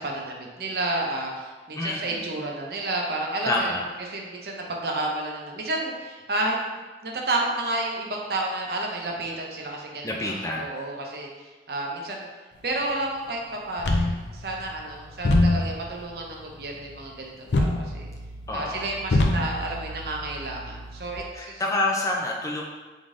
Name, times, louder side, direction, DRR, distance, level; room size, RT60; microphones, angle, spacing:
voice 1, 0.0-6.7 7.0-11.3 11.7-12.3 12.6-18.1 18.5-21.6, right 2 dB, 60° right, 0 dB, 0.7 m, -31 dB
voice 2, 1.8-2.2 3.5-3.9 10.0-10.7 18.5-18.9 21.3-22.6, left 2 dB, 20° left, -1 dB, 0.5 m, -27 dB
sound 1, 13.8-21.2, left 2 dB, 80° left, 0.5 m, -27 dB
3.7 x 3.6 x 3.7 m, 1.3 s
head